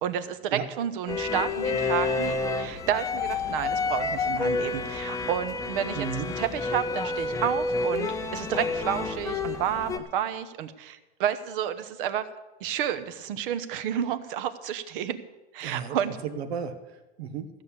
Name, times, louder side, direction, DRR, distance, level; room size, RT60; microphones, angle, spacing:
voice 1, 0.0-12.3 12.6-15.2 15.5-16.2, right 9 dB, 60° right, 12 dB, 1.1 m, -30 dB
sound 1, 1.1-10.0, left 3 dB, 10° left, 0.5 m, -29 dB
voice 2, 5.9-6.3 15.6-16.0 16.2-17.5, right 7 dB, 90° right, 9 dB, 1.7 m, -34 dB
15.0 x 6.8 x 8.7 m, 1.1 s
supercardioid pair, 160°, 31 cm